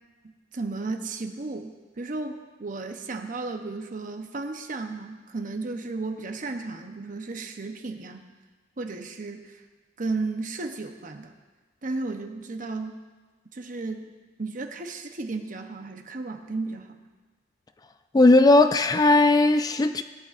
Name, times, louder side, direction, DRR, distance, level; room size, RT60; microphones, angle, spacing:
voice 1, 0.2-8.3 8.8-9.5 10.0-11.3 11.8-13.0 13.5-17.0, right 3 dB, 45° right, 0.9 m, -34 dB
voice 2, 18.1-20.0, left 2 dB, 20° left, 0.3 m, -17 dB
18.5 x 10.5 x 2.5 m
head